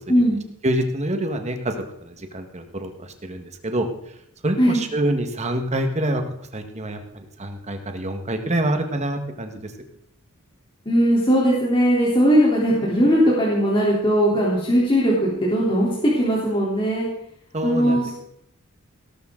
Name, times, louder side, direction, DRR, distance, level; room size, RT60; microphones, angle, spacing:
voice 1, 0.6-1.7 2.0-3.9 4.4-6.2 6.5-9.7 17.5-18.1, right 1 dB, 30° right, 6 dB, 1.6 m, -26 dB
voice 2, 10.9-17.1 17.6-18.1, equal, 25° left, -6 dB, 3.4 m, -19 dB
17.5 x 12.5 x 3.9 m, 0.72 s
head